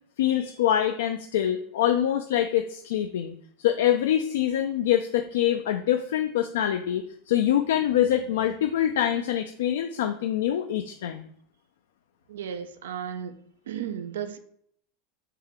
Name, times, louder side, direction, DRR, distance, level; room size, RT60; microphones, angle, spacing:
voice 1, 0.2-11.3, left 11 dB, 85° left, 6 dB, 0.3 m, -25 dB
voice 2, 12.3-13.4 13.7-14.4, right 8 dB, 90° right, 10 dB, 0.4 m, -34 dB
3.7 x 2.8 x 4.6 m, 0.66 s
supercardioid pair, 120°, 0 cm